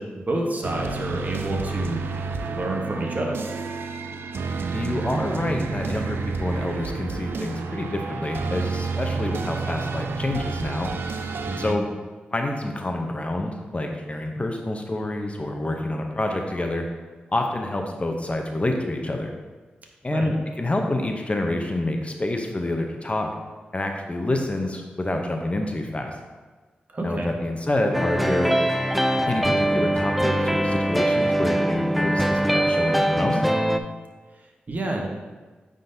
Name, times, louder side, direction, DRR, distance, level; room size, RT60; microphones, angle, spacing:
voice 1, 0.0-2.0 2.5-3.4 11.5-11.7 20.1-20.3 26.9-27.3 34.7-35.1, right 2 dB, 45° right, 0 dB, 1.1 m, -28 dB
sound 1, 0.6-11.7, right 4 dB, 75° right, 0.4 m, -30 dB
voice 2, 4.7-10.9 11.6-11.9 12.3-16.8 17.3-19.4 20.0-23.3 23.7-26.2 27.0-28.5 29.3-33.4, left 1 dB, 35° left, 3 dB, 0.7 m, -27 dB
sound 2, 27.9-33.8, right 1 dB, ahead, 0.4 m, -22 dB
9.0 x 3.9 x 2.7 m, 1.3 s
cardioid pair, 45°, 4 cm